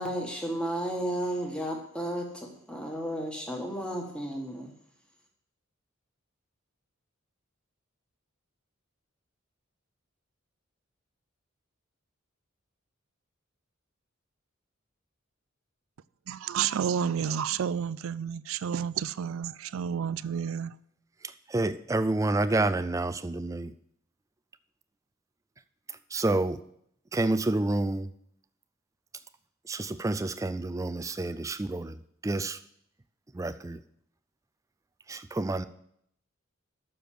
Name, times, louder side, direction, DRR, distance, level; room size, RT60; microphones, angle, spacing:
voice 1, 0.0-4.7, right 1 dB, 5° left, 1.5 m, -33 dB
voice 2, 16.3-20.7, right 8 dB, 85° right, 0.4 m, -30 dB
voice 3, 21.5-23.7 26.1-26.6 27.1-28.1 29.7-32.0 32.2-32.6 33.3-33.8 35.1-35.7, right 2 dB, 15° right, 0.4 m, -28 dB
7.0 x 6.6 x 7.6 m
head